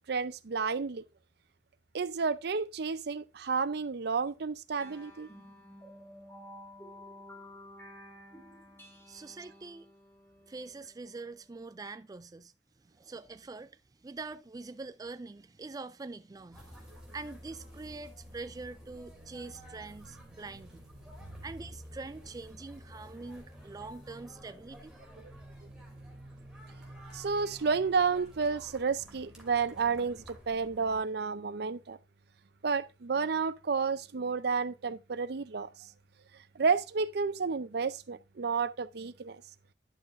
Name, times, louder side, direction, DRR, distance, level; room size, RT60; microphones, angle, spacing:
voice 1, 0.1-1.0 1.9-5.3 21.2-21.3 25.2-25.3 27.1-32.0 32.6-35.9 36.5-39.4, right 5 dB, 65° right, 0.6 m, -31 dB
sound 1, 4.8-11.7, left 1 dB, 15° left, 2.1 m, -52 dB
voice 2, 9.1-9.9 10.5-12.5 12.8-20.8 21.4-25.0, right 3 dB, 20° right, 0.4 m, -44 dB
sound 2, 16.5-31.0, equal, 5° right, 2.8 m, -51 dB
10.5 x 6.5 x 2.6 m
head